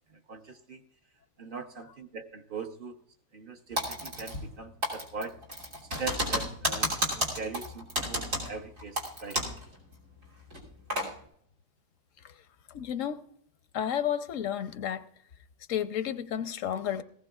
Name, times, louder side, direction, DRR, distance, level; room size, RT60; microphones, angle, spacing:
voice 1, 0.1-0.8 1.4-3.0 3.3-5.4 6.0-9.4, right 4 dB, 50° right, 5 dB, 0.9 m, -41 dB
Typing, 3.8-4.6 4.8-9.6 9.9-10.0 10.5-11.1, equal, 90° right, 3.4 m, -31 dB
voice 2, 12.7-13.2 13.7-15.0 15.7-17.0, left 9 dB, 80° left, 11 dB, 1.1 m, -31 dB
18.0 x 15.5 x 2.4 m, 0.65 s
omnidirectional pair, 1.3 m